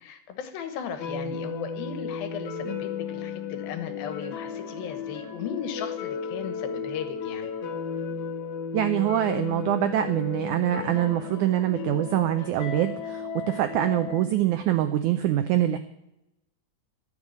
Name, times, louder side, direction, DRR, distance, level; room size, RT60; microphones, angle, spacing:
voice 1, 0.0-7.5, left 7 dB, 75° left, 8 dB, 3.0 m, -36 dB
sound 1, 1.0-14.2, left 6 dB, 60° left, 2.5 m, -34 dB
voice 2, 8.7-15.8, right 12 dB, 90° right, 9 dB, 1.7 m, -24 dB
13.5 x 6.6 x 8.5 m, 0.86 s
omnidirectional pair, 4.3 m